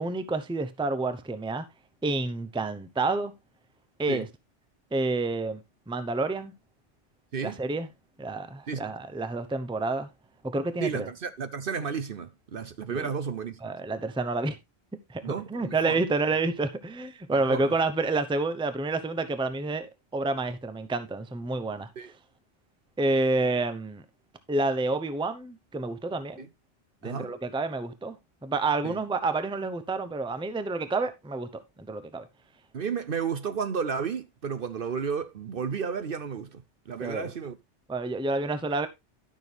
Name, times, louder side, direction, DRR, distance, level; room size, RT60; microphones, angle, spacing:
voice 1, 0.0-1.6 2.0-3.3 4.0-4.3 4.9-5.6 5.9-6.5 7.4-7.9 8.2-10.1 10.4-11.1 12.9-13.1 13.6-14.6 15.1-21.9 23.0-24.0 24.5-26.5 27.0-28.2 28.4-31.6 31.9-32.3 37.0-37.3 37.9-38.9, right 3 dB, 5° right, 0.6 m, -29 dB
voice 2, 10.8-13.6 15.2-16.0 17.3-17.7 22.0-22.1 26.4-26.5 27.0-27.3 28.8-29.0 32.7-37.6, right 6 dB, 55° right, 0.9 m, -32 dB
12.0 x 6.2 x 3.3 m
omnidirectional pair, 1.2 m